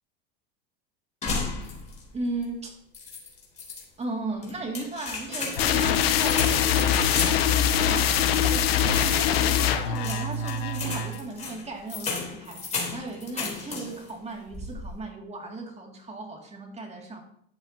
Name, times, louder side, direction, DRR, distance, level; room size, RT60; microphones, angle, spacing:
sound 1, 1.2-2.1 2.4-2.5 2.9-3.8 4.4-14.1 14.5-15.0, left 4 dB, 25° left, 3.2 m, -34 dB
voice 1, 2.1-2.8 4.0-17.2, right 3 dB, 20° right, 2 dB, 2.1 m, -36 dB
sound 2, 5.6-11.2, left 8 dB, 85° left, 0.8 m, -23 dB
10.5 x 8.1 x 2.7 m, 0.66 s
hypercardioid pair, 100°, 29 cm